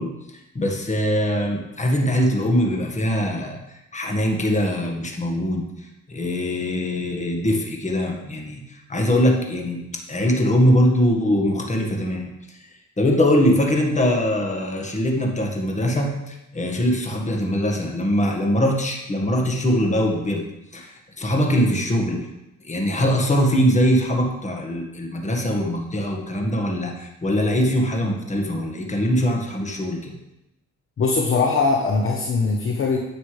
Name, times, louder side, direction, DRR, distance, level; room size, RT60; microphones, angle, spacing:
voice 1, 0.0-9.8 10.1-20.4 20.7-22.2 22.6-30.1, equal, 25° left, 1 dB, 1.7 m, -22 dB
voice 2, 31.0-33.0, left 4 dB, 45° left, 0 dB, 1.1 m, -21 dB
9.8 x 6.8 x 3.3 m, 0.91 s
cardioid pair, 90°, 30 cm